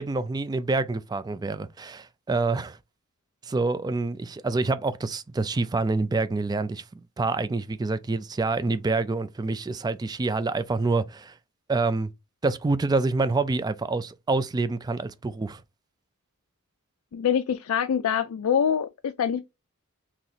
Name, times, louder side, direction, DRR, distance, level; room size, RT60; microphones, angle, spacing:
voice 1, 0.0-2.8 3.4-6.8 7.2-11.3 11.7-12.1 12.4-15.6, right 3 dB, 20° right, 0.3 m, -27 dB
voice 2, 17.1-19.5, left 8 dB, 80° left, 0.4 m, -25 dB
4.0 x 3.0 x 2.8 m
head